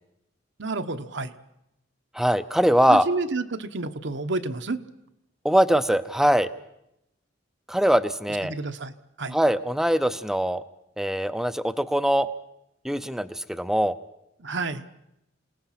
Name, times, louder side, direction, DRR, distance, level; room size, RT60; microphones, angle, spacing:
voice 1, 0.6-1.3 2.9-4.8 8.4-9.3 14.4-14.8, right 3 dB, 65° right, 9 dB, 1.1 m, -30 dB
voice 2, 2.1-3.1 5.4-6.5 7.7-8.5 9.3-10.6 11.0-12.3 12.8-14.0, equal, ahead, 12 dB, 0.7 m, -22 dB
27.0 x 18.0 x 5.9 m, 0.85 s
head